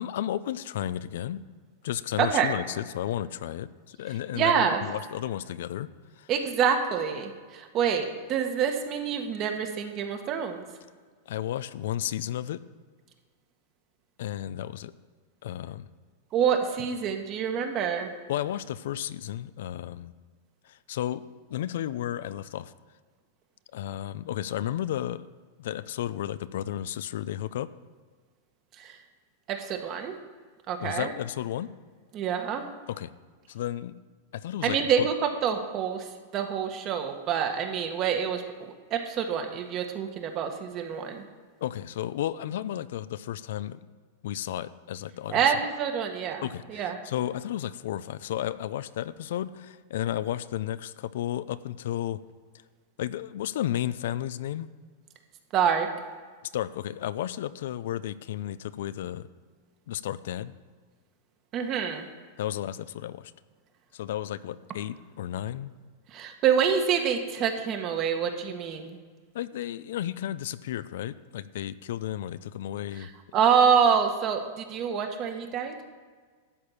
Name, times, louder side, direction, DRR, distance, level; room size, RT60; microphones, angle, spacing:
voice 1, 0.0-1.4 1.8-5.9 6.2-6.3 11.3-12.6 14.2-14.9 15.4-15.9 18.3-20.1 20.7-21.2 21.5-22.7 23.7-25.3 25.6-27.7 30.8-31.7 32.9-33.1 33.5-34.0 34.3-35.1 41.6-43.9 44.2-45.4 46.4-52.2 53.0-54.7 56.5-59.3 59.9-60.5 62.4-63.3 63.9-65.7 69.3-73.1, left 12 dB, 70° left, 16 dB, 0.5 m, -33 dB
voice 2, 2.2-2.5 4.3-4.8 6.3-10.6 16.3-18.1 28.8-28.9 29.5-30.1 30.7-31.1 32.1-32.6 34.6-36.1 36.3-41.2 45.3-46.9 55.5-55.9 61.5-62.1 66.1-69.0 73.3-75.7, right 7 dB, 35° right, 5 dB, 1.5 m, -26 dB
12.5 x 4.4 x 8.4 m, 1.5 s
hypercardioid pair, 130°, 0 cm